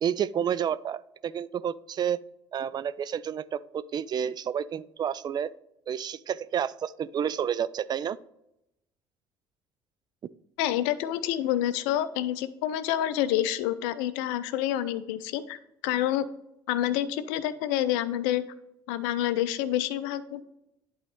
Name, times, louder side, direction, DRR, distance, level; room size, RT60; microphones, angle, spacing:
voice 1, 0.0-2.2 2.5-5.5 5.9-8.2, right 8 dB, 30° right, 17 dB, 0.3 m, -30 dB
voice 2, 10.6-16.2 16.7-18.4 18.9-20.4, left 12 dB, 60° left, 14 dB, 0.5 m, -28 dB
11.0 x 4.0 x 3.1 m, 0.84 s
figure-of-eight pair, 55°, 13 cm